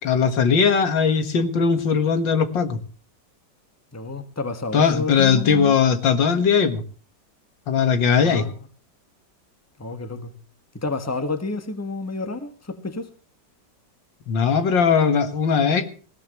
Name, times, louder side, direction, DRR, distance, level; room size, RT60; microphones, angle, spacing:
voice 1, 0.0-2.8 4.7-6.8 7.7-8.4 14.3-15.9, left 6 dB, 85° left, 2.4 m, -19 dB
voice 2, 3.9-5.7 8.2-8.5 9.8-10.3 10.7-13.1, left 3 dB, 10° left, 1.5 m, -30 dB
19.0 x 17.5 x 3.1 m
omnidirectional pair, 2.0 m